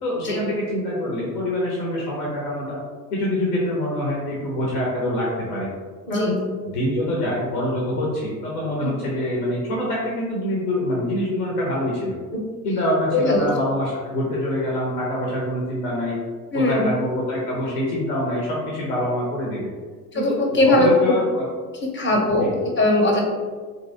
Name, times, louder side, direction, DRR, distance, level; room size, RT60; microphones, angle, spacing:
voice 1, 0.0-2.8 3.1-5.8 6.1-6.3 6.6-12.2 12.6-16.2 16.5-19.7 20.1-21.4 22.3-22.6, left 1 dB, 70° left, -4 dB, 0.8 m, -25 dB
voice 2, 6.1-6.4 8.8-9.0 13.1-13.5 16.5-16.9 20.1-20.9 21.9-22.5 22.8-23.2, left 2 dB, 25° left, 0 dB, 0.7 m, -20 dB
2.8 x 2.6 x 2.6 m, 1.5 s
figure-of-eight pair, 60°, 47 cm